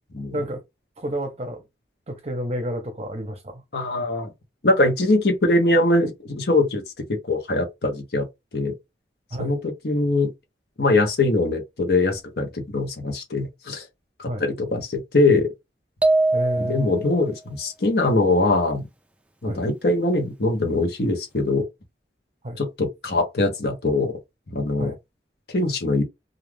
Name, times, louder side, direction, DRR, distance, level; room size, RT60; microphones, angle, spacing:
voice 1, 1.0-1.6 2.1-3.6 9.3-9.5 14.2-14.4 16.3-16.9 19.4-19.7 22.4-22.6 24.8-24.9, equal, 35° right, 0.7 m, -30 dB
voice 2, 3.7-4.3 4.6-6.8 7.1-8.3 8.5-8.7 9.4-10.3 10.8-13.8 14.2-15.5 16.6-18.8 19.4-21.7 22.6-24.2 24.5-24.9 25.5-26.0, left 2 dB, 65° left, 0.9 m, -22 dB
sound 1, 16.0-17.2, right 2 dB, 5° right, 0.3 m, -21 dB
2.4 x 2.4 x 3.3 m
head